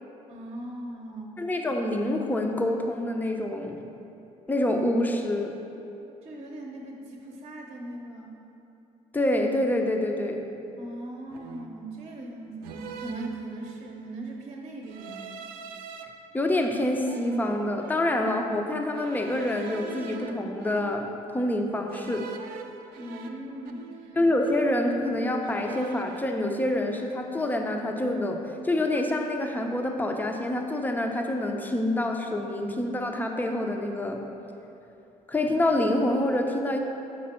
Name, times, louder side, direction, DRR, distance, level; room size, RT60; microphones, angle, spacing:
voice 1, 0.3-1.5 6.2-8.4 10.8-15.3 22.9-24.2, right 1 dB, 40° right, 0 dB, 0.9 m, -39 dB
voice 2, 1.4-3.8 4.5-5.5 9.1-10.5 16.3-21.1 21.3-22.3 24.2-28.4 28.6-34.2 35.3-36.8, left 1 dB, 10° left, 3 dB, 0.6 m, -26 dB
sound 1, 10.2-10.5 11.3-11.9 12.6-14.0 14.8-16.0 16.6-18.2 18.9-21.3 21.9-24.2 24.4-25.1 25.4-26.3, right 6 dB, 90° right, 0.5 m, -44 dB
7.4 x 5.0 x 4.3 m, 2.9 s
cardioid pair, 90°, 15 cm